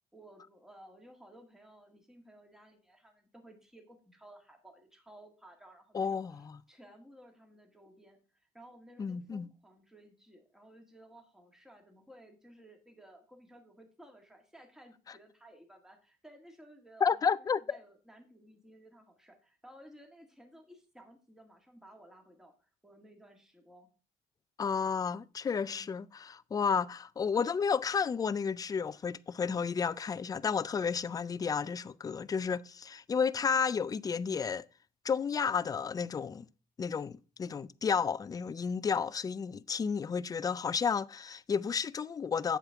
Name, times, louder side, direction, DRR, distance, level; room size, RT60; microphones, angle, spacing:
voice 1, 0.1-23.9 25.6-26.0, right 1 dB, 5° right, 1.8 m, -57 dB
voice 2, 5.9-6.6 9.0-9.5 17.0-17.8 24.6-34.6 35.0-36.5 36.8-42.6, left 6 dB, 20° left, 0.4 m, -32 dB
8.0 x 7.2 x 3.4 m
cardioid pair, 110°, 17 cm